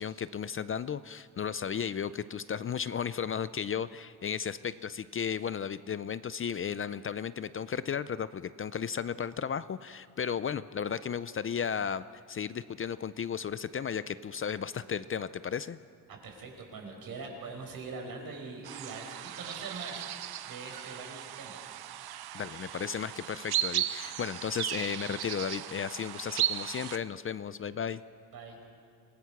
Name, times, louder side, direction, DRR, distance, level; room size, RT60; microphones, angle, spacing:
voice 1, 0.0-15.8 22.3-28.0, left 7 dB, 35° left, 15 dB, 0.4 m, -34 dB
voice 2, 16.1-20.1 20.4-21.6 28.3-28.6, right 4 dB, 70° right, 2 dB, 5.1 m, -42 dB
sound 1, 18.6-27.0, right 12 dB, 90° right, 0.9 m, -36 dB
27.0 x 17.5 x 6.0 m, 2.6 s
cardioid pair, 125°, 37 cm